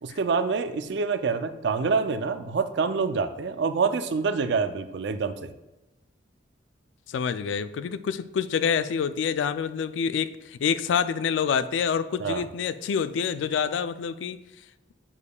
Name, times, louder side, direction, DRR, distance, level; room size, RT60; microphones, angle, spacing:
voice 1, 0.0-5.5 12.2-12.5, right 5 dB, 65° right, 11 dB, 0.4 m, -26 dB
voice 2, 7.1-14.4, left 7 dB, 75° left, 13 dB, 0.3 m, -27 dB
7.3 x 6.5 x 2.3 m, 1.0 s
head